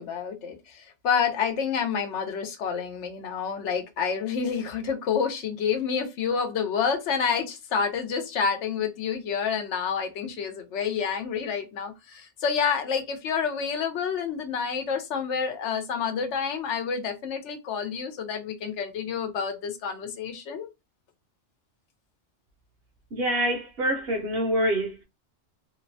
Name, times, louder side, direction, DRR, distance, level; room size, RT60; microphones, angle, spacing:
voice 1, 0.0-20.7, left 6 dB, 85° left, 1.0 m, -28 dB
voice 2, 23.1-25.0, equal, 65° right, 0.8 m, -26 dB
2.8 x 2.1 x 2.6 m
omnidirectional pair, 1.2 m